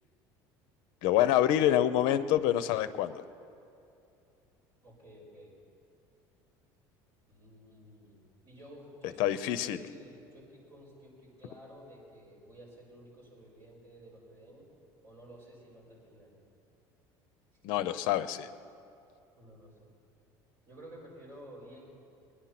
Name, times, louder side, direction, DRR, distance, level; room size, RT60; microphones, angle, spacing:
voice 1, 1.0-3.2 9.2-9.8 17.6-18.5, left 12 dB, 60° left, 13 dB, 0.6 m, -26 dB
voice 2, 4.8-5.6 7.3-14.7 15.0-16.4 19.4-19.9 20.7-21.8, equal, 40° right, -4 dB, 4.6 m, -52 dB
21.0 x 10.0 x 5.9 m, 2.7 s
cardioid pair, 175°, 8 cm